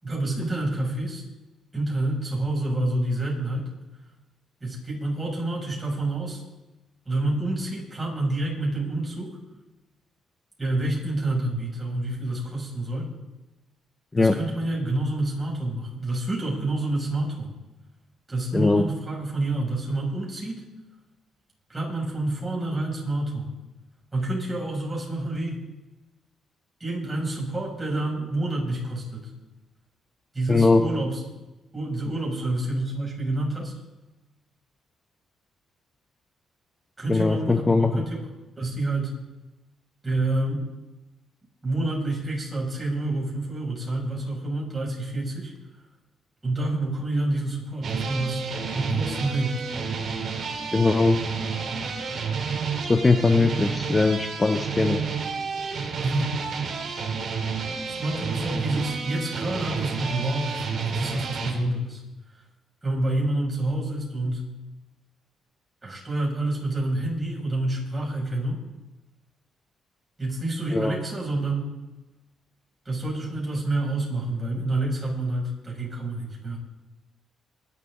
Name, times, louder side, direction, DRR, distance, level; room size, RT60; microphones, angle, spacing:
voice 1, 0.0-1.2 1.7-3.7 4.6-6.4 7.0-9.3 10.6-13.1 14.2-17.5 18.3-20.6 21.7-23.5 24.1-25.6 26.8-29.3 30.3-31.2 31.7-33.7 37.0-38.3 38.6-39.2 40.0-40.6 41.6-45.5 46.4-48.5 48.7-49.6 55.8-56.3 57.9-62.0 62.8-64.5 65.8-68.6 70.2-71.7 72.8-76.6, right 2 dB, 20° right, -3 dB, 6.9 m, -28 dB
voice 2, 18.5-18.9 30.5-30.8 37.1-38.0 50.7-51.2 52.9-55.0 70.7-71.0, left 3 dB, 20° left, 7 dB, 0.9 m, -20 dB
sound 1, 47.8-61.5, right 5 dB, 55° right, 3.4 m, -30 dB
23.5 x 11.5 x 3.9 m, 1.1 s
cardioid pair, 90°, 0 cm